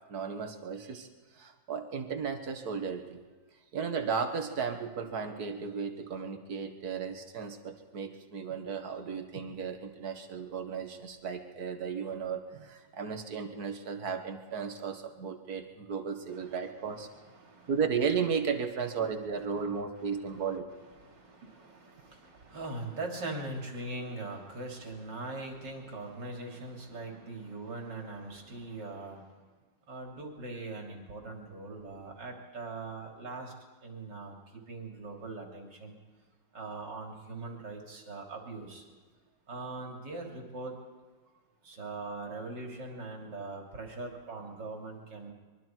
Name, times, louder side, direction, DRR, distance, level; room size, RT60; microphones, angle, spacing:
voice 1, 0.1-1.1 1.3-3.2 3.7-17.1 17.7-20.7, right 6 dB, 60° right, 6 dB, 2.1 m, -34 dB
voice 2, 16.3-17.7 19.4-19.5 20.0-20.4 21.0-29.4 29.9-33.5 33.8-36.0 36.5-38.9 39.5-40.8 41.6-45.3, right 2 dB, 80° right, 1 dB, 3.6 m, -41 dB
25.0 x 23.0 x 4.6 m, 1.4 s
omnidirectional pair, 1.9 m